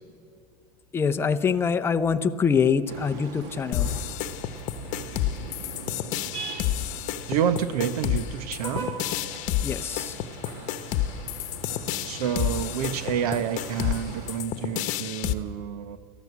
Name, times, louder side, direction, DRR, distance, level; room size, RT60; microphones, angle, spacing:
voice 1, 0.9-3.9 9.6-10.2, left 6 dB, 10° left, 9 dB, 0.7 m, -24 dB
sound 1, 2.9-14.4, right 4 dB, 50° right, 2.9 m, -40 dB
sound 2, 3.7-15.3, left 12 dB, 40° left, 1.1 m, -30 dB
voice 2, 7.3-8.9 12.0-16.0, right 9 dB, 70° right, 12 dB, 1.4 m, -28 dB
29.5 x 14.5 x 8.3 m, 2.7 s
supercardioid pair, 165°, 20 cm